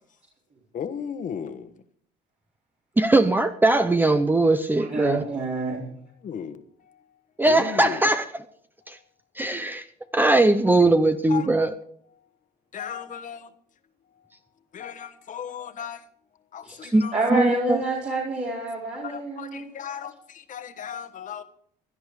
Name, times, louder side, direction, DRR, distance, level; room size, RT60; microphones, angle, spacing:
voice 1, 0.7-1.7 6.2-7.0 7.5-8.0 8.9-9.0 10.0-10.2 11.3-11.5 12.7-13.5 14.7-16.0 16.5-17.6 19.0-21.4, left 8 dB, 50° left, 1.3 m, -36 dB
voice 2, 3.0-5.2 7.4-8.2 8.9-9.0 9.4-9.8 10.1-11.7 16.9-17.0 17.3-17.8, right 2 dB, 10° right, 0.7 m, -20 dB
voice 3, 4.9-5.8 16.6-16.8 17.1-19.6, right 2 dB, 45° right, 4.3 m, -28 dB
17.0 x 11.5 x 4.9 m
cardioid pair, 110°, 17 cm